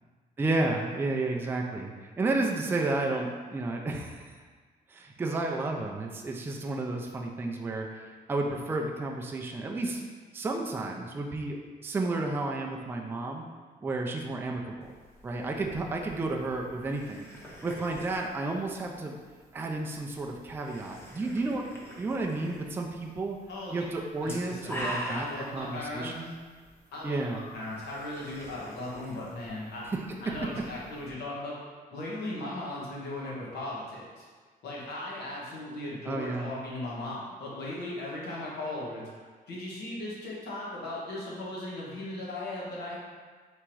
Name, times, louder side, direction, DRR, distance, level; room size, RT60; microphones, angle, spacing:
voice 1, 0.4-1.9 2.2-4.3 4.9-10.0 10.3-13.5 13.8-14.9 15.2-17.3 17.6-19.2 19.5-21.7 22.0-23.4 23.7-26.3 27.0-27.4 30.1-30.2 36.1-36.5, right 2 dB, 15° right, 1 dB, 0.3 m, -32 dB
sound 1, 14.8-31.1, equal, 15° left, 0.7 m, -45 dB
voice 2, 23.5-23.8 24.2-26.1 26.9-29.8 30.2-31.6 31.9-34.2 34.6-43.0, left 1 dB, 85° left, -5 dB, 1.3 m, -37 dB
3.5 x 3.0 x 4.6 m, 1.5 s
cardioid pair, 150°, 17 cm